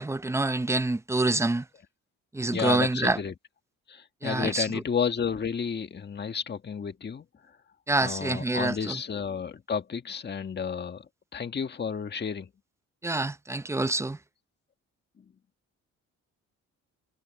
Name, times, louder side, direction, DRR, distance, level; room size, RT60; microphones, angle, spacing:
voice 1, 0.0-1.6 2.3-3.2 4.2-4.7 7.9-9.0 13.0-14.2, right 2 dB, 10° right, 0.7 m, -26 dB
voice 2, 2.5-3.3 3.9-7.6 8.0-12.5 15.2-15.3, left 6 dB, 35° left, 1.5 m, -32 dB
cardioid pair, 90°, 30 cm